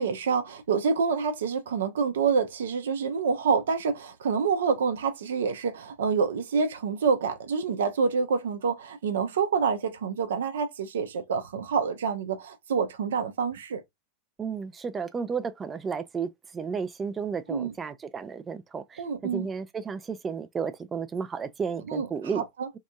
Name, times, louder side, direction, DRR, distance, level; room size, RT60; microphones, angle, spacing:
voice 1, 0.0-13.8 17.5-17.7 19.0-19.5 21.9-22.1 22.3-22.8, right 5 dB, 60° right, 0.6 m, -27 dB
voice 2, 14.4-22.4, right 6 dB, 20° right, 0.4 m, -33 dB
2.8 x 2.5 x 2.3 m
figure-of-eight pair, 90°, 0 cm